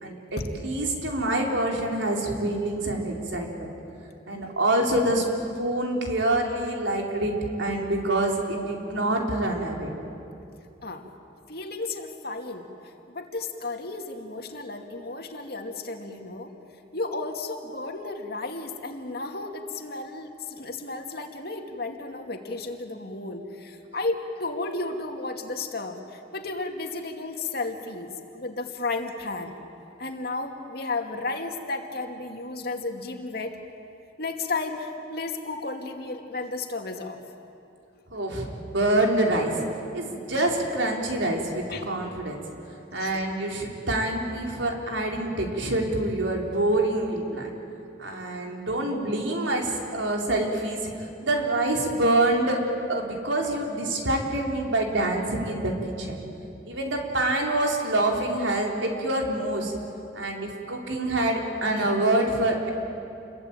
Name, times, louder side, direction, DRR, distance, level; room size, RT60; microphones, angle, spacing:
voice 1, 0.0-3.7 4.3-5.3 5.5-7.3 7.6-9.9 38.1-39.6 39.9-42.4 42.9-47.5 48.0-50.8 51.2-52.6 52.9-55.7 56.0-56.2 56.7-59.7 60.1-62.7, right 1 dB, 85° right, 1 dB, 4.3 m, -26 dB
voice 2, 11.5-16.5 16.9-29.5 30.0-33.6 34.2-37.2 41.7-42.1 42.9-43.2 60.2-60.3 61.8-61.9, left 3 dB, 55° left, 4 dB, 2.4 m, -33 dB
29.0 x 22.5 x 9.1 m, 2.7 s
head